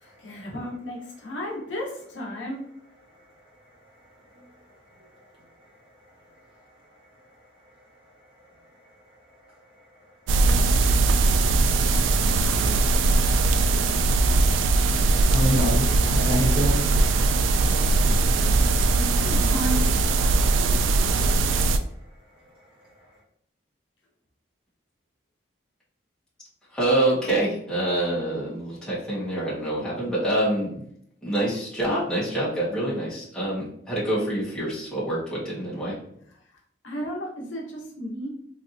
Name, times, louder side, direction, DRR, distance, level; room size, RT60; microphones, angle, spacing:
voice 1, 0.0-2.6 19.2-19.9 20.7-21.2 36.8-38.3, equal, 75° left, -1 dB, 0.9 m, -33 dB
sound 1, 10.3-21.8, right 3 dB, 80° right, 0.3 m, -20 dB
voice 2, 15.3-17.0, equal, 25° right, -6 dB, 1.1 m, -26 dB
voice 3, 26.7-30.8 31.2-36.0, right 1 dB, 5° left, -9 dB, 1.3 m, -26 dB
3.3 x 2.8 x 2.6 m, 0.69 s
head